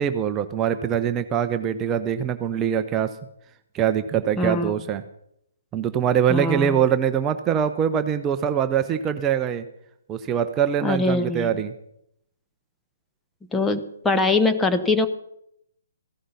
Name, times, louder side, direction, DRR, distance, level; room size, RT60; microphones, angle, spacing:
voice 1, 0.0-3.1 3.7-5.0 5.7-9.6 10.1-11.7, right 8 dB, 20° right, 9 dB, 0.6 m, -23 dB
voice 2, 4.4-4.8 6.3-6.8 10.8-11.6 13.5-15.1, left 2 dB, 10° left, 7 dB, 0.8 m, -22 dB
15.0 x 11.5 x 5.6 m, 0.76 s
figure-of-eight pair, 130°, 0 cm